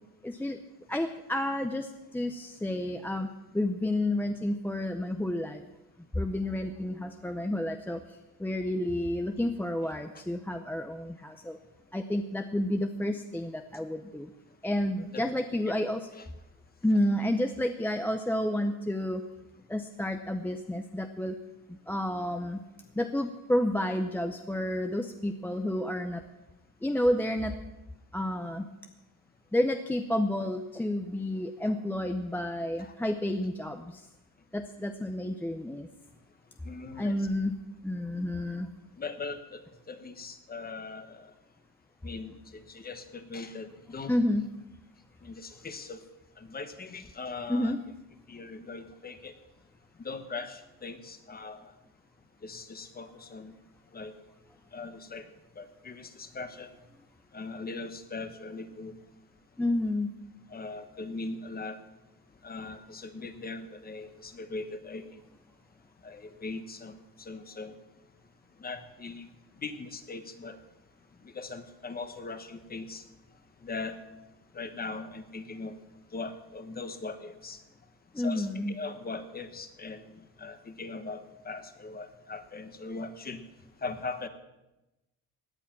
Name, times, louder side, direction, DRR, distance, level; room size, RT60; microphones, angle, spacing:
voice 1, 0.2-0.6 0.9-3.3 3.5-5.6 6.1-8.0 8.4-11.6 11.9-14.3 14.6-16.0 16.8-19.2 19.7-21.4 21.7-22.6 23.0-26.2 26.8-27.6 28.1-28.7 29.5-34.0 34.5-35.9 37.0-37.5 37.8-38.7 44.1-44.5 47.5-47.8 59.6-60.1 78.1-78.7, left 1 dB, 5° left, 6 dB, 0.6 m, -30 dB
voice 2, 36.6-37.3 39.0-41.3 42.0-44.1 45.2-46.0 46.4-47.8 48.3-49.4 50.0-51.6 52.4-53.5 53.9-54.1 54.7-55.3 55.5-56.7 57.3-58.9 60.5-61.8 62.4-65.2 66.0-66.9 67.2-67.8 68.6-69.3 69.6-70.6 71.2-73.0 73.6-74.0 74.5-75.8 76.1-77.6 78.2-83.4 83.8-84.3, left 3 dB, 25° left, 9 dB, 1.1 m, -40 dB
17.0 x 9.8 x 5.9 m, 1.0 s
cardioid pair, 140°, 37 cm